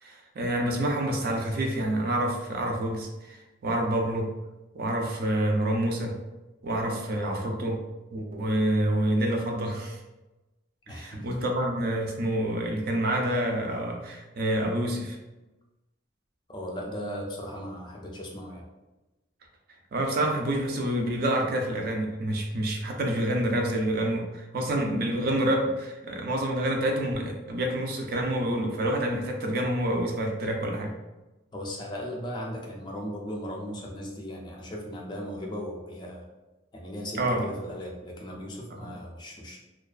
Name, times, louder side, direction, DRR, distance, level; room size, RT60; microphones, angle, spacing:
voice 1, 0.0-4.3 4.7-6.2 6.6-7.8 8.1-10.0 10.9-15.2 19.9-30.9 37.2-37.4 38.9-39.0, right 1 dB, 50° right, 1 dB, 0.4 m, -27 dB
voice 2, 10.9-11.3 16.5-18.7 31.5-36.3 36.7-39.6, equal, 25° left, -1 dB, 0.3 m, -37 dB
2.3 x 2.3 x 2.3 m, 1.1 s
head